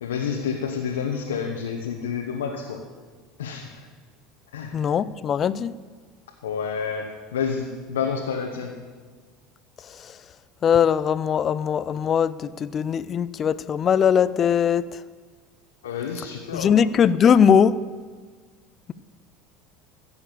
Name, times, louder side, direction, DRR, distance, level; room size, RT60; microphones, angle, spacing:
voice 1, 0.0-2.8 3.4-3.9 4.5-4.8 6.4-8.8 15.8-16.8, left 6 dB, 90° left, 1 dB, 1.1 m, -29 dB
voice 2, 4.7-5.7 10.6-14.8 16.5-17.8, left 7 dB, 40° left, 17 dB, 0.5 m, -20 dB
15.5 x 7.0 x 6.8 m, 1.5 s
hypercardioid pair, 85°, 0 cm